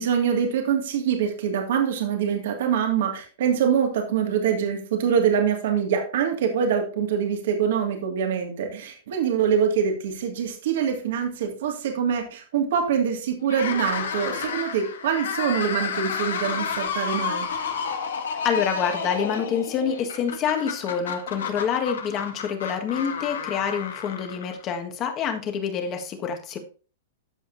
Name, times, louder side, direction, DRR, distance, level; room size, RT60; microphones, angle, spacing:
voice 1, 0.0-17.5, right 7 dB, 70° right, 3 dB, 1.9 m, -24 dB
sound 1, 13.4-24.7, left 6 dB, 90° left, 1.7 m, -31 dB
voice 2, 18.3-26.6, left 7 dB, 30° left, 5 dB, 1.5 m, -27 dB
13.0 x 5.1 x 2.6 m, 0.37 s
hypercardioid pair, 140°, 0 cm